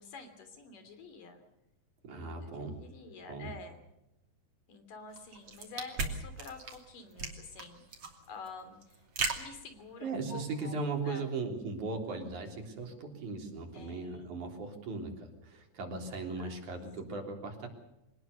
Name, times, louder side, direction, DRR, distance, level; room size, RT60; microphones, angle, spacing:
voice 1, 0.0-1.4 2.4-2.5 2.8-3.8 4.7-7.8 8.3-8.8 9.3-10.8 11.1-11.2 12.1-12.3 13.7-14.4 16.4-16.6, left 4 dB, 85° left, 8 dB, 4.8 m, -48 dB
voice 2, 2.0-2.8 3.3-3.5 10.0-17.7, right 3 dB, 65° right, 2 dB, 4.9 m, -38 dB
sound 1, 5.1-10.3, right 4 dB, 45° right, 3.7 m, -38 dB
25.0 x 19.0 x 6.7 m, 0.88 s
omnidirectional pair, 3.7 m